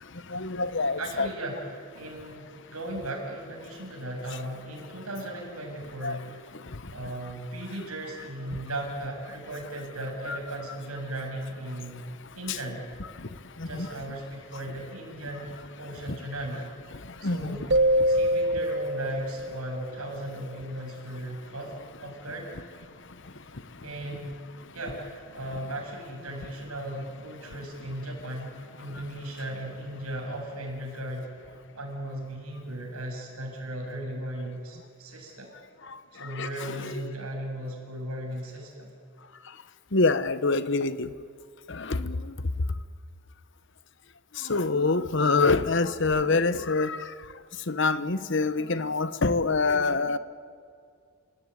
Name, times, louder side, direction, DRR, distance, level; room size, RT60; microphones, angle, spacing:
voice 1, 0.3-1.3 6.0-6.2 10.3-10.4 12.5-12.6 13.7-13.9 17.2-17.6 36.4-37.0 39.9-41.1 41.7-42.2 44.5-47.0 47.7-50.2, left 3 dB, 55° left, 13 dB, 1.0 m, -25 dB
voice 2, 1.0-6.4 6.9-12.1 12.3-12.9 13.7-16.6 17.2-17.6 18.1-22.5 23.8-24.3 24.7-28.5 28.8-31.3 31.7-35.5 36.1-38.9, right 1 dB, 85° right, 0 dB, 7.4 m, -37 dB
sound 1, 17.7-20.3, equal, 50° right, 1.0 m, -25 dB
29.5 x 18.0 x 9.8 m, 2.2 s
head